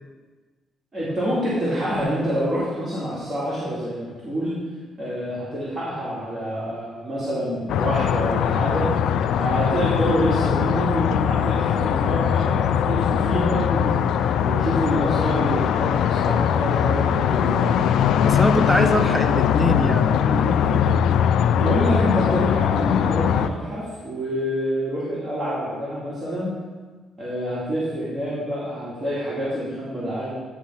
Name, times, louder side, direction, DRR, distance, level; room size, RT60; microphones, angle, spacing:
voice 1, 0.9-4.6 5.0-8.9 9.3-13.9 14.4-17.8 21.5-26.5 27.2-30.3, equal, 25° right, -10 dB, 2.3 m, -27 dB
sound 1, 7.7-23.5, left 8 dB, 80° left, 0.3 m, -21 dB
voice 2, 18.2-20.6, equal, 5° right, 8 dB, 0.5 m, -24 dB
10.0 x 3.7 x 5.6 m, 1.3 s
cardioid pair, 90°, 0 cm